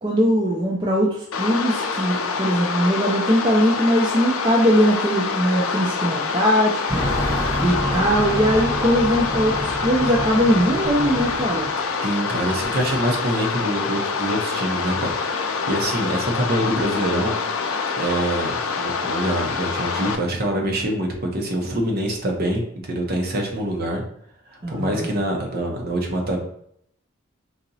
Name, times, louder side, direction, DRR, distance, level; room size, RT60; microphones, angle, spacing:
voice 1, 0.0-6.8 7.6-11.7 24.6-25.1, equal, 20° right, -3 dB, 0.5 m, -20 dB
sound 1, 1.3-20.2, left 5 dB, 70° left, 0.4 m, -26 dB
sound 2, 6.9-11.7, equal, 15° left, 1.4 m, -27 dB
voice 2, 12.0-17.3 18.0-18.5 18.8-24.0 24.5-26.4, right 1 dB, 45° right, 1 dB, 0.8 m, -25 dB
4.0 x 2.9 x 2.7 m, 0.70 s
head